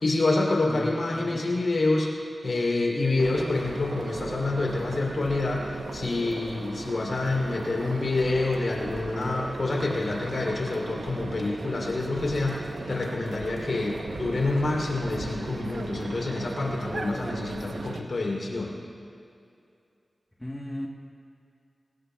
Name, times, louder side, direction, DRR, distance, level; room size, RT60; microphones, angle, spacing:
voice 1, 0.0-2.1 2.4-18.7, left 2 dB, 65° left, -1 dB, 3.1 m, -27 dB
voice 2, 0.7-1.5 20.4-20.9, left 1 dB, 10° left, -1 dB, 1.2 m, -36 dB
sound 1, 3.2-18.0, right 3 dB, 80° right, 0.8 m, -37 dB
22.0 x 19.0 x 2.3 m, 2.5 s
wide cardioid pair, 75°, 0 cm